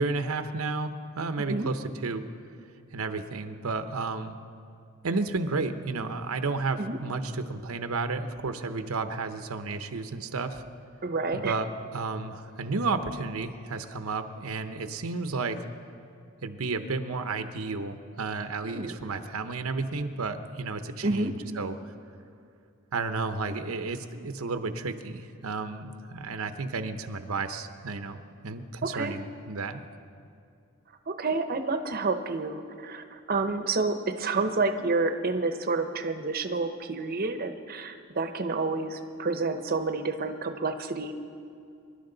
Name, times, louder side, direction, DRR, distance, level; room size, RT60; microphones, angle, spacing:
voice 1, 0.0-2.2 2.9-4.4 5.0-10.6 11.3-15.6 16.4-21.9 22.9-29.8, right 3 dB, 90° right, 8 dB, 0.8 m, -32 dB
voice 2, 11.0-11.6 18.6-19.0 21.0-21.3 28.8-29.1 31.1-41.1, right 3 dB, 45° right, 7 dB, 0.8 m, -29 dB
24.5 x 11.5 x 3.9 m, 2.5 s
head